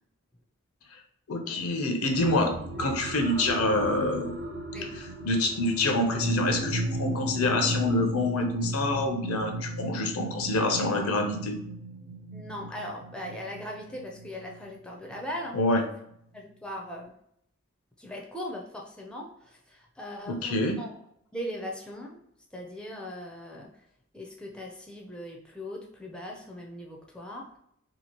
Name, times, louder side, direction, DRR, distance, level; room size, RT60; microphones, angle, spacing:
voice 1, 1.3-4.4 4.8-11.6 15.5-15.8 20.3-20.8, left 2 dB, 85° left, 4 dB, 0.6 m, -27 dB
sound 1, 2.1-15.5 16.1-16.2, right 1 dB, 90° right, 0.7 m, -35 dB
voice 2, 12.3-15.6 16.3-17.1 18.0-20.9 21.3-22.1 22.5-23.7 24.1-27.4, equal, 5° left, -1 dB, 0.4 m, -39 dB
2.8 x 2.4 x 2.9 m, 0.72 s
head